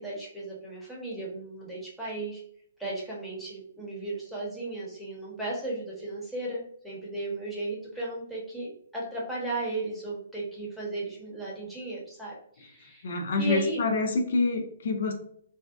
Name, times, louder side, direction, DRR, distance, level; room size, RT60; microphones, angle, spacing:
voice 1, 0.0-2.4 2.8-13.1 13.4-13.8, right 2 dB, ahead, -7 dB, 0.9 m, -35 dB
voice 2, 13.0-15.1, left 3 dB, 60° left, 5 dB, 0.5 m, -27 dB
2.6 x 2.1 x 2.4 m, 0.62 s
hypercardioid pair, 130°, 0 cm